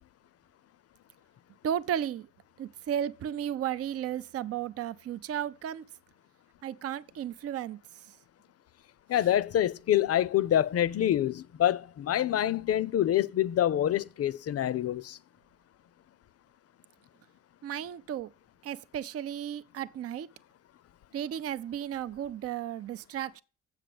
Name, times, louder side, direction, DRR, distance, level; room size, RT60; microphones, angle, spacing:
voice 1, 1.6-2.3 2.6-5.8 6.6-7.8 17.6-18.3 18.6-20.3 21.1-23.4, right 10 dB, 50° right, 0.5 m, -34 dB
voice 2, 9.1-15.2, left 11 dB, 55° left, 0.6 m, -26 dB
7.5 x 6.6 x 7.7 m
cardioid pair, 90°, 30 cm